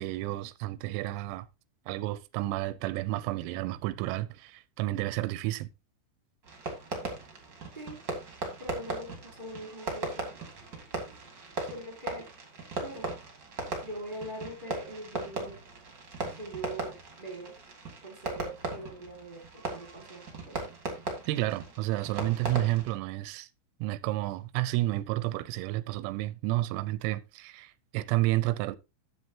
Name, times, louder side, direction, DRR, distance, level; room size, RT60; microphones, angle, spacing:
voice 1, 0.0-1.5 1.9-5.7 21.3-23.5 23.8-28.8, right 17 dB, 90° right, 3.4 m, -31 dB
Fireworks, 6.4-22.9, right 3 dB, 30° right, 2.2 m, -38 dB
voice 2, 8.6-10.4 11.7-12.3 12.8-13.1 13.8-15.6 16.3-17.5 18.0-20.7, right 1 dB, 10° right, 2.6 m, -42 dB
12.5 x 8.4 x 2.9 m
omnidirectional pair, 6.0 m